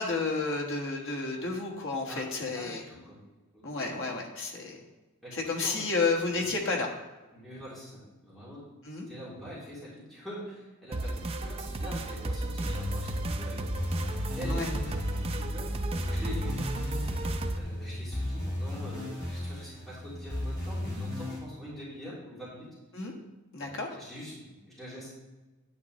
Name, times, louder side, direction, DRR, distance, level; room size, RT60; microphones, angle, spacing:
voice 1, 0.0-2.8 3.6-4.8 5.3-6.9 8.8-9.1 14.5-14.7 22.9-23.1 23.5-24.0, left 3 dB, 60° left, 0 dB, 1.5 m, -31 dB
voice 2, 2.1-3.2 3.5-4.0 5.2-5.8 6.4-6.5 7.3-8.6 8.9-13.9 14.4-16.6 17.6-22.7 23.6-25.1, equal, ahead, -10 dB, 3.0 m, -44 dB
sound 1, 10.9-17.6, right 2 dB, 25° right, 0.5 m, -33 dB
sound 2, 12.6-21.4, left 1 dB, 20° left, 3.1 m, -36 dB
9.5 x 9.1 x 3.1 m, 1.2 s
head